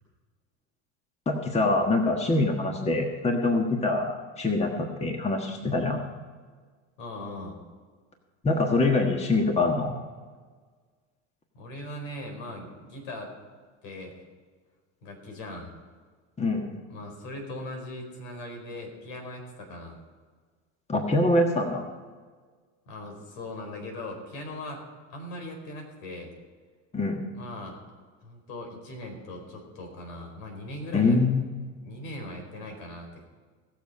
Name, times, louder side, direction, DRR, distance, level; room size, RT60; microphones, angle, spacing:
voice 1, 1.3-6.0 8.4-10.0 16.4-16.7 20.9-21.8 26.9-27.2 30.9-31.5, left 2 dB, 15° left, 3 dB, 1.5 m, -24 dB
voice 2, 7.0-7.6 11.5-13.3 13.8-14.1 15.0-15.7 16.9-20.0 22.8-24.8 25.1-26.3 27.3-27.8 28.2-31.2 31.8-33.3, left 1 dB, 75° left, 3 dB, 4.6 m, -39 dB
18.5 x 7.2 x 5.5 m, 1.5 s
supercardioid pair, 110°, 38 cm